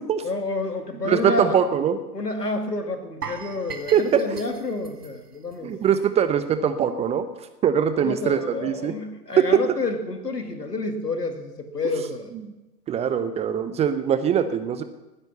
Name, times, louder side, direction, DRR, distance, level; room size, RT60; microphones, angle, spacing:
voice 1, 0.2-1.6 2.1-5.7 8.0-12.3, left 3 dB, 85° left, 5 dB, 2.4 m, -29 dB
voice 2, 1.0-2.0 3.9-4.4 5.6-7.3 7.6-8.9 9.4-9.6 12.9-14.8, right 8 dB, 15° right, 11 dB, 0.6 m, -22 dB
sound 1, 3.2-6.2 6.5-6.7 7.1-7.2, right 6 dB, 80° right, 1.6 m, -39 dB
20.0 x 9.8 x 6.9 m, 1.1 s
figure-of-eight pair, 105°, 46 cm